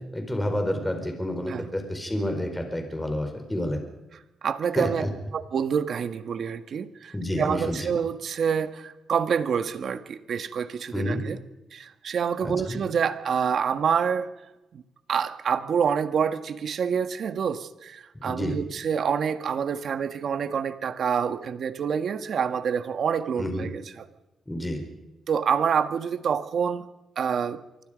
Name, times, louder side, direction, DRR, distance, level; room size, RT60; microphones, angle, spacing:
voice 1, 0.0-3.8 4.8-5.1 7.1-7.9 10.9-11.2 12.4-12.8 18.1-18.6 23.4-23.7 24.5-24.8, left 1 dB, 10° left, 5 dB, 4.7 m, -29 dB
voice 2, 4.4-5.1 5.3-11.4 11.7-14.3 14.7-14.8 15.1-24.0 25.3-26.9 27.1-27.6, right 7 dB, 55° right, 9 dB, 1.6 m, -27 dB
27.0 x 24.0 x 5.2 m, 1.0 s
cardioid pair, 135°, 0 cm